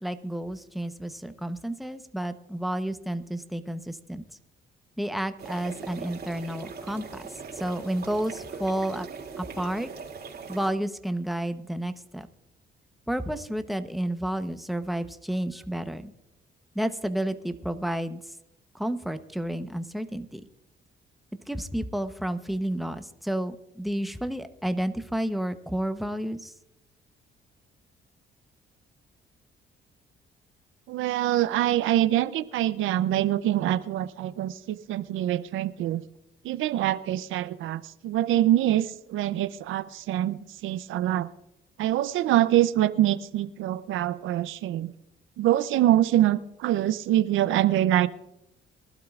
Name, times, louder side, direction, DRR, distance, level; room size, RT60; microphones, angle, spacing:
voice 1, 0.0-4.2 5.0-7.2 7.6-9.1 9.4-9.9 10.5-12.3 13.1-16.1 16.7-18.2 18.7-20.4 21.5-26.5, right 1 dB, ahead, 9 dB, 0.9 m, -31 dB
sound 1, 5.4-10.7, right 5 dB, 55° right, 2.6 m, -40 dB
voice 2, 30.9-36.0 36.4-41.3 41.8-44.9 45.4-48.1, right 13 dB, 85° right, 15 dB, 0.6 m, -25 dB
23.5 x 12.0 x 2.4 m, 0.89 s
cardioid pair, 90°, 20 cm